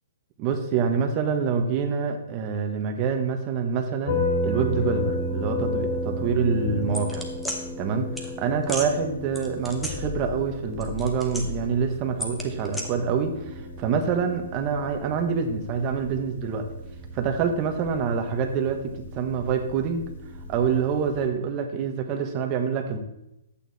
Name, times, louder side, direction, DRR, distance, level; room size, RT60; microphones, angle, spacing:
voice 1, 0.4-7.3 7.8-8.1 8.4-16.7 17.1-20.1 20.5-23.0, right 6 dB, 25° right, 4 dB, 1.2 m, -26 dB
sound 1, 4.1-21.3, left 1 dB, 45° left, 2.0 m, -33 dB
sound 2, 6.9-7.6 8.2-8.3 8.6-8.9 9.4-10.5 10.7-11.7 12.2-12.8, left 1 dB, 5° left, 1.0 m, -33 dB
11.5 x 8.5 x 4.2 m, 0.87 s
hypercardioid pair, 165°, 0 cm